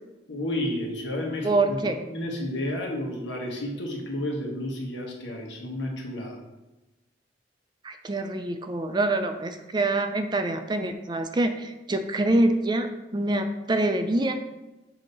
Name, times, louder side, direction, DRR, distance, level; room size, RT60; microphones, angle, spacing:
voice 1, 0.3-6.4, left 1 dB, 80° left, -1 dB, 1.5 m, -31 dB
voice 2, 1.4-2.0 7.8-14.3, right 2 dB, 25° right, 7 dB, 0.4 m, -25 dB
7.5 x 2.9 x 5.3 m, 1.0 s
head